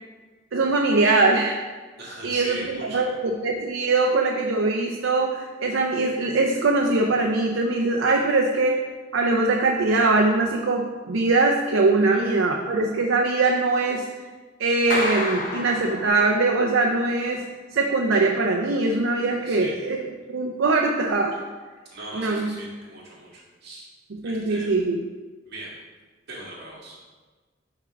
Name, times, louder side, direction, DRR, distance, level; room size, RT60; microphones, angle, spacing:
voice 1, 0.5-1.6 2.2-8.8 9.1-14.1 14.6-17.4 17.7-21.4 22.1-22.5 24.2-25.0, right 3 dB, 90° right, 1 dB, 0.6 m, -22 dB
voice 2, 2.0-3.1 12.1-12.3 19.4-19.8 21.9-23.9 24.2-24.8 25.5-25.7 26.3-27.0, right 2 dB, 55° right, -6 dB, 2.1 m, -39 dB
Clapping, 14.9-16.6, left 2 dB, 45° left, 0.9 m, -30 dB
6.1 x 3.8 x 5.8 m, 1.3 s
head